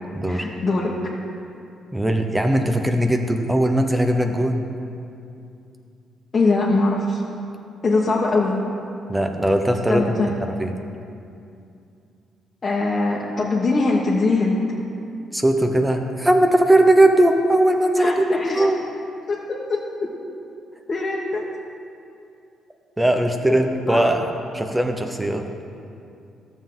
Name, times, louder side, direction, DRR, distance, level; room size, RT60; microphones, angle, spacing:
voice 1, 0.3-0.9 6.3-7.2 7.8-8.6 9.9-10.3 12.6-14.6 18.0-18.7 19.3-20.1 20.9-21.4 23.5-24.1, left 3 dB, 35° left, -5 dB, 1.2 m, -22 dB
voice 2, 1.9-4.7 9.1-10.0 10.4-10.7 15.3-18.8 23.0-24.3 24.5-25.4, right 1 dB, 10° right, 5 dB, 0.8 m, -19 dB
13.5 x 7.2 x 3.9 m, 2.5 s
cardioid pair, 90°, 0 cm